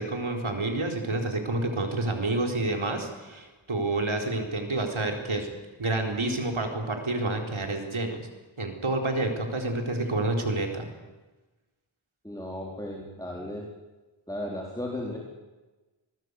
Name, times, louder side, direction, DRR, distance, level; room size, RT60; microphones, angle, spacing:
voice 1, 0.0-5.5 5.8-8.3 8.6-10.9, right 2 dB, 80° right, 2 dB, 4.3 m, -29 dB
voice 2, 12.2-13.7 14.3-15.2, left 1 dB, 5° left, -1 dB, 4.4 m, -35 dB
24.5 x 19.5 x 8.2 m, 1.2 s
wide cardioid pair, 50°, 48 cm